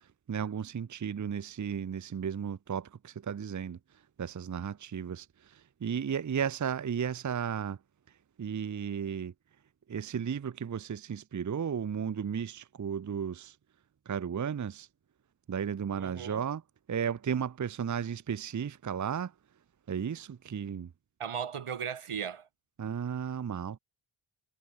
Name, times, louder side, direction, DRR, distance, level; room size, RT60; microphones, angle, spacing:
voice 1, 0.3-3.8 4.2-7.8 8.4-9.3 9.9-13.6 14.1-14.9 15.5-16.6 16.9-19.3 19.9-20.9 22.8-23.8, right 7 dB, 35° right, 0.6 m, -34 dB
voice 2, 16.0-16.4 21.2-22.5, right 7 dB, 90° right, 3.7 m, -36 dB
wide cardioid pair, 110°, 49 cm